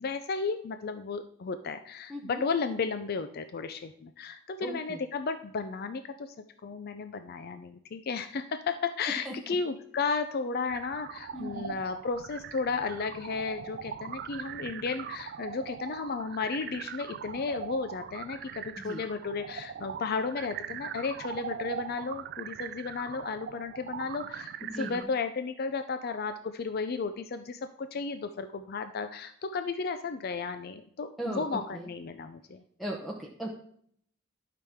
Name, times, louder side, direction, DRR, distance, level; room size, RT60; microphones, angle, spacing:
voice 1, 0.0-6.4 6.6-32.6, left 4 dB, 50° left, 9 dB, 0.5 m, -34 dB
voice 2, 2.1-2.4 4.6-5.0 9.2-9.5 11.3-11.8 18.8-19.0 24.6-25.1 31.2-31.9 32.8-33.5, right 1 dB, ahead, -2 dB, 0.8 m, -38 dB
sound 1, 10.7-25.0, right 8 dB, 55° right, 0.3 m, -41 dB
11.5 x 5.9 x 3.5 m, 0.65 s
head